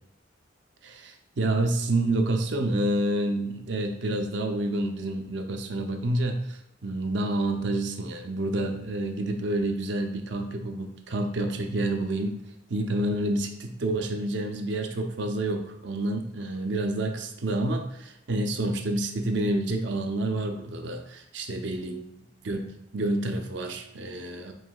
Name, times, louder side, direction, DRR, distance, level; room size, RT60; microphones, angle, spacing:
voice 1, 0.8-12.3 12.7-22.0 22.4-22.6 22.9-24.5, right 1 dB, 70° right, 5 dB, 0.5 m, -28 dB
4.8 x 3.6 x 2.3 m, 0.79 s
head